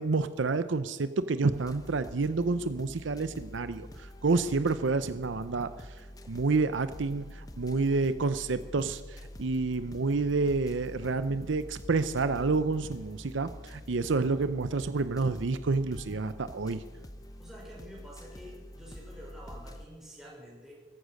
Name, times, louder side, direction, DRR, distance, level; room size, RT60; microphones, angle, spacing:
voice 1, 0.0-5.9 6.3-16.8, right 3 dB, 75° right, 12 dB, 0.6 m, -29 dB
sound 1, 1.5-19.9, left 1 dB, 20° left, 0.9 m, -46 dB
voice 2, 17.4-20.7, equal, ahead, -5 dB, 5.7 m, -48 dB
15.0 x 14.5 x 6.5 m, 1.4 s
head